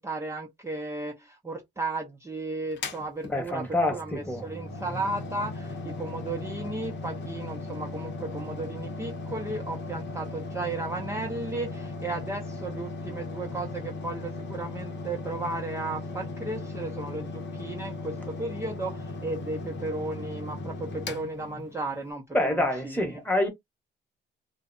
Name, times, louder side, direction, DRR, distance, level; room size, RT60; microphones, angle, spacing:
voice 1, 0.0-23.2, right 2 dB, 15° right, 0.6 m, -35 dB
Mechanical fan, 2.7-22.1, left 2 dB, 65° left, 0.8 m, -37 dB
voice 2, 3.3-4.4 22.3-23.5, left 1 dB, 10° left, 1.0 m, -26 dB
2.5 x 2.1 x 2.4 m
cardioid pair, 90°, 20 cm